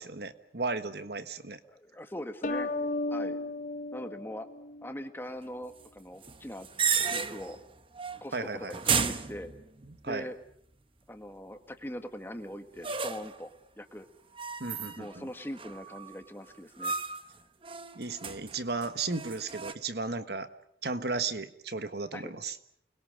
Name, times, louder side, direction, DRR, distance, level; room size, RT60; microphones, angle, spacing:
voice 1, 0.0-1.6 8.3-8.7 10.0-10.2 14.6-15.3 17.9-20.5 20.8-22.6, right 3 dB, 60° right, 11 dB, 1.4 m, -35 dB
voice 2, 1.6-2.7 3.1-3.4 3.9-4.5 4.8-6.7 7.1-7.6 8.2-9.5 10.0-10.4 11.1-14.1 15.0-17.0 22.1-22.3, left 1 dB, 10° left, 7 dB, 1.5 m, -41 dB
sound 1, 2.4-5.1, left 2 dB, 40° left, 0.9 m, -34 dB
sound 2, 6.2-7.6 7.9-8.3 8.7-10.0 12.8-13.4 14.4-15.2 15.5-16.2 16.8-17.3 17.6-19.7, right 6 dB, 30° right, 1.0 m, -33 dB
29.5 x 21.5 x 6.6 m, 0.69 s
head